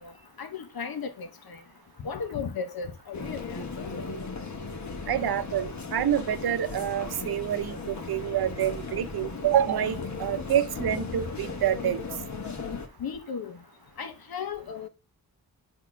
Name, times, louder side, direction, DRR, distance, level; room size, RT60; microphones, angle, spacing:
voice 1, 0.4-1.6 2.0-3.9 13.0-13.6 14.0-14.9, left 6 dB, 75° left, 1.1 m, -35 dB
sound 1, 3.1-12.9, left 4 dB, 50° left, 1.3 m, -36 dB
voice 2, 5.1-12.0, right 10 dB, 80° right, 0.7 m, -27 dB
8.4 x 3.0 x 6.1 m
wide cardioid pair, 80°, 37 cm